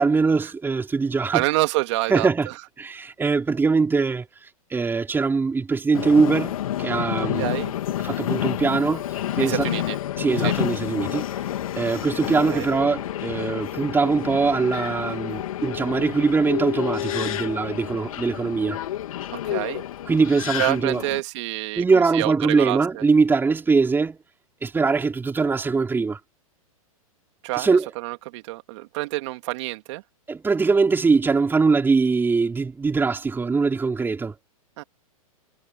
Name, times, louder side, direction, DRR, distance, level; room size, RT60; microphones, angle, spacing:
voice 1, 0.0-1.5 2.1-2.5 2.8-4.3 4.7-7.5 8.0-9.1 9.4-9.7 10.2-11.3 11.8-18.8 20.1-21.0 21.8-24.2 24.6-26.2 27.6-27.9 30.3-34.3, right 4 dB, 10° right, 3.9 m, -22 dB
voice 2, 1.3-2.5 7.4-7.7 9.4-10.0 10.4-10.5 12.5-12.7 19.4-19.8 20.6-23.0 27.4-30.0 34.8-34.9, right 21 dB, 50° right, 2.9 m, -27 dB
Subway metro underground, 5.9-21.2, left 12 dB, 70° left, 3.6 m, -29 dB
hypercardioid pair, 120°, 19 cm